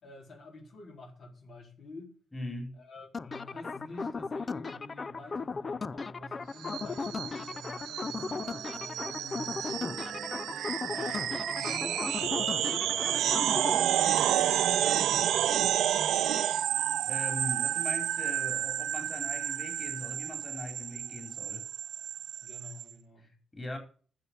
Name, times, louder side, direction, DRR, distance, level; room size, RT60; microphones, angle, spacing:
voice 1, 0.0-2.1 2.8-10.1 10.9-15.8 22.4-23.3, left 3 dB, 65° left, 4.3 m, -47 dB
voice 2, 2.3-2.8 16.6-16.7 17.1-21.7 23.2-23.8, left 1 dB, 20° left, 4.0 m, -40 dB
sound 1, 3.1-13.8, left 4 dB, 40° left, 0.4 m, -37 dB
sound 2, 6.6-22.8, right 11 dB, 80° right, 0.6 m, -30 dB
sound 3, 8.1-15.4, right 5 dB, 50° right, 0.9 m, -44 dB
8.0 x 6.9 x 8.4 m
supercardioid pair, 60°, 0 cm